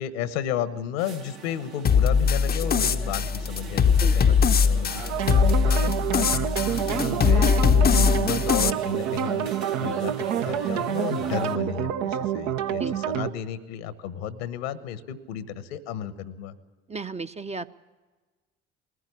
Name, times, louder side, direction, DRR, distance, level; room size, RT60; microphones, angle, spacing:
voice 1, 0.0-7.5 7.8-9.5 9.8-16.5, left 9 dB, 70° left, 16 dB, 1.2 m, -33 dB
sound 1, 1.0-11.6, right 5 dB, 85° right, 1.3 m, -39 dB
sound 2, 1.8-8.7, left 6 dB, 30° left, 0.7 m, -21 dB
voice 2, 3.9-4.5 12.7-12.9 16.9-17.7, right 4 dB, 20° right, 9 dB, 0.7 m, -35 dB
sound 3, 5.1-13.3, right 10 dB, 60° right, 0.9 m, -28 dB
20.5 x 14.5 x 9.7 m, 1.3 s
figure-of-eight pair, 50°, 31 cm